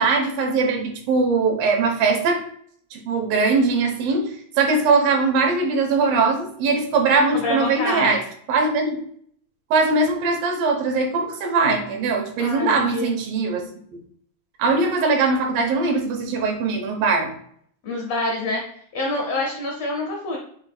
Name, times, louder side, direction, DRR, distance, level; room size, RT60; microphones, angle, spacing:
voice 1, 0.0-2.4 2.9-8.2 8.5-9.0 9.7-13.7 14.6-17.3, right 4 dB, 80° right, 3 dB, 2.6 m, -21 dB
voice 2, 7.3-8.2 12.4-13.2 17.8-18.6 18.9-20.4, left 2 dB, 90° left, -1 dB, 1.4 m, -26 dB
6.4 x 3.6 x 2.2 m, 0.63 s
omnidirectional pair, 4.1 m